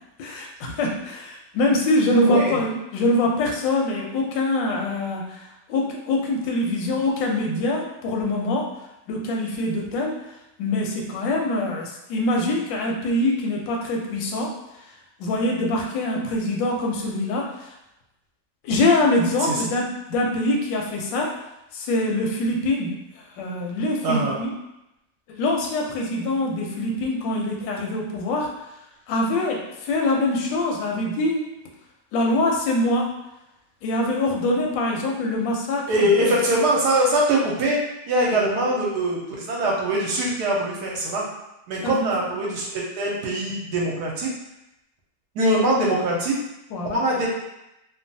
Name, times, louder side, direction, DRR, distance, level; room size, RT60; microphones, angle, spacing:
voice 1, 0.2-8.7 9.1-10.2 10.6-14.6 15.2-17.7 18.6-21.3 21.7-23.0 23.4-24.5 25.3-28.5 29.1-31.5 32.1-33.2 33.8-36.4 41.8-42.1 46.7-47.0, left 1 dB, 90° left, 0 dB, 1.3 m, -24 dB
voice 2, 2.3-2.6 19.4-19.6 24.0-24.4 35.9-41.3 41.7-44.3 45.3-46.4 46.9-47.3, right 1 dB, 70° right, -3 dB, 1.1 m, -22 dB
2.9 x 2.2 x 2.6 m, 0.89 s
omnidirectional pair, 1.9 m